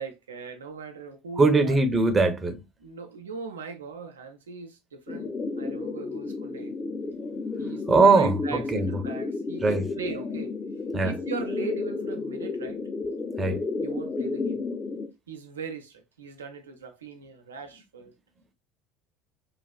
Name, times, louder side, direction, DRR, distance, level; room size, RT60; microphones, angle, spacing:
voice 1, 0.0-1.8 2.8-5.3 5.6-6.7 7.6-10.5 11.0-12.8 13.8-14.6 15.3-18.1, right 5 dB, 80° right, 0.5 m, -39 dB
voice 2, 1.4-2.6 7.9-9.0 9.6-9.8 10.9-11.1 13.4-13.6, right 3 dB, 25° right, 0.6 m, -21 dB
sound 1, 5.1-15.1, left 3 dB, 25° left, 0.5 m, -32 dB
3.2 x 2.4 x 2.3 m
figure-of-eight pair, 65°, 0 cm